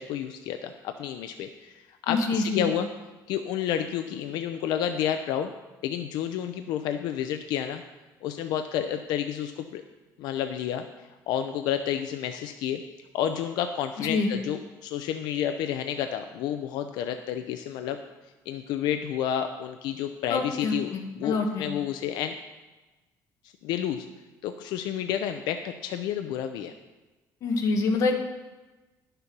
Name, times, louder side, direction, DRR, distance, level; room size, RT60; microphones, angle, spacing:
voice 1, 0.0-2.9 3.3-5.5 5.8-7.8 8.2-9.8 10.2-10.8 11.3-12.8 13.1-18.0 18.5-22.4 23.6-24.1 24.4-26.7, left 9 dB, 80° left, 7 dB, 0.6 m, -30 dB
voice 2, 2.1-2.7 14.0-14.3 20.3-21.6 27.4-28.2, left 3 dB, 50° left, 3 dB, 1.4 m, -26 dB
11.0 x 6.7 x 6.0 m, 1.2 s
cardioid pair, 175°, 7 cm